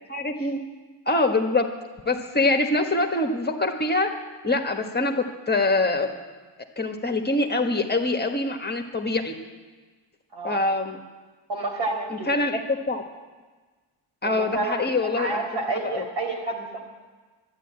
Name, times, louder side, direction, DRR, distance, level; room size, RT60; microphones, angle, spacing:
voice 1, 0.1-0.6 1.0-1.7 2.0-4.1 4.4-6.1 6.8-9.3 10.4-11.0 12.3-13.0 14.2-15.4 15.8-16.0, left 2 dB, 20° left, 3 dB, 1.5 m, -24 dB
voice 2, 10.3-10.6 11.5-12.3 14.2-16.8, right 2 dB, 60° right, 2 dB, 4.2 m, -30 dB
11.5 x 10.5 x 8.8 m, 1.3 s
supercardioid pair, 70°, 47 cm